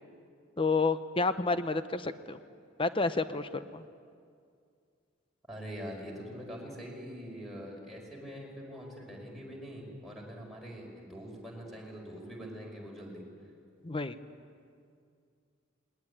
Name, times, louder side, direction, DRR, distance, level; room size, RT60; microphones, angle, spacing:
voice 1, 0.6-2.4 2.8-3.8 13.8-14.2, left 3 dB, 25° left, 11 dB, 0.8 m, -30 dB
voice 2, 5.5-13.2, equal, ahead, -2 dB, 5.1 m, -44 dB
20.5 x 19.5 x 10.0 m, 2.3 s
head